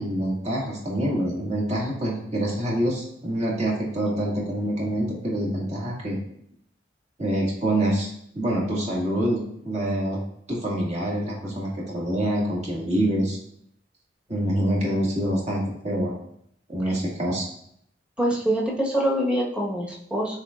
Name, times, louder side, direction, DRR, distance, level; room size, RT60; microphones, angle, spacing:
voice 1, 0.0-6.2 7.2-10.2 10.5-13.4 14.3-16.1 16.7-17.5, right 1 dB, 40° right, -4 dB, 1.9 m, -26 dB
voice 2, 18.2-20.4, right 1 dB, 5° right, -4 dB, 1.3 m, -24 dB
12.0 x 4.0 x 2.5 m, 0.71 s
head